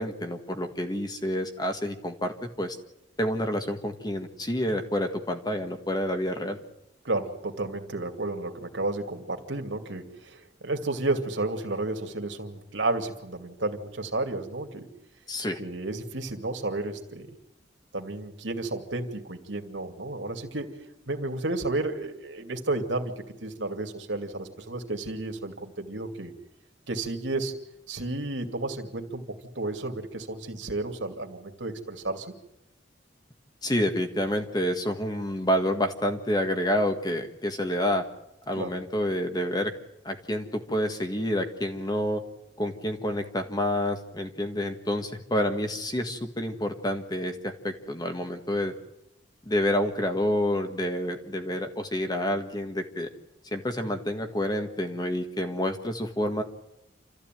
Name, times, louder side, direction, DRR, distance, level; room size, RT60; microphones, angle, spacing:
voice 1, 0.0-2.8 3.2-6.6 15.3-15.6 33.6-38.0 38.5-39.7 40.1-42.2 42.6-48.7 49.5-53.1 53.5-56.4, left 1 dB, 20° left, 6 dB, 1.7 m, -28 dB
voice 2, 7.0-14.9 15.6-17.3 17.9-20.7 21.1-26.3 26.9-27.5 27.9-32.3 38.5-38.7, right 2 dB, 90° right, 4 dB, 2.6 m, -32 dB
27.5 x 14.5 x 9.3 m, 0.87 s
head